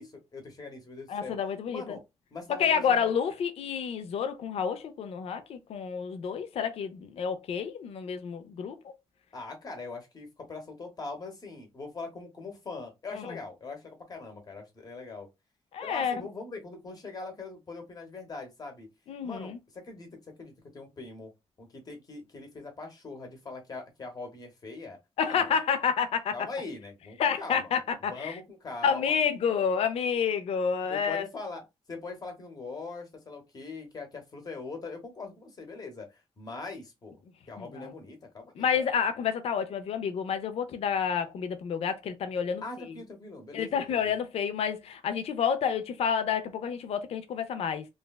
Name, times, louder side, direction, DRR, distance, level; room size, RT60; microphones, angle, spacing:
voice 1, 0.0-1.4 1.7-2.0 2.3-3.1 9.3-15.3 15.8-18.9 19.2-20.1 20.4-21.3 21.6-25.0 25.2-25.5 26.3-27.7 28.1-29.2 30.9-37.2 37.5-38.9 42.6-44.1, left 3 dB, 35° left, 1.0 m, -41 dB
voice 2, 1.1-2.0 2.6-8.9 13.1-13.3 15.7-16.1 19.1-19.6 25.2-26.3 27.2-28.4 28.8-31.3 37.8-37.9 38.6-42.6 42.9-43.0 43.5-47.9, left 7 dB, 70° left, 0.5 m, -29 dB
3.2 x 2.2 x 2.3 m
wide cardioid pair, 130°, 11 cm